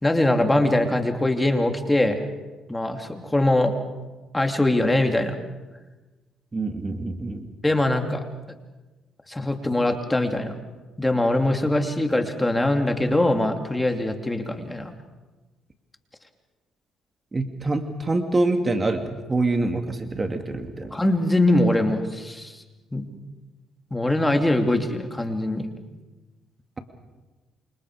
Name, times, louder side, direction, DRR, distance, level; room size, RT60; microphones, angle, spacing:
voice 1, 0.0-2.3 2.7-3.7 4.3-5.4 7.6-8.2 9.3-10.5 11.0-14.9 20.9-22.6 22.9-23.0 23.9-25.7, left 1 dB, 15° left, 5 dB, 3.0 m, -22 dB
voice 2, 6.5-7.4 17.3-20.9, right 2 dB, 30° right, 6 dB, 2.4 m, -25 dB
28.5 x 26.5 x 5.0 m, 1.2 s
supercardioid pair, 65°, 0 cm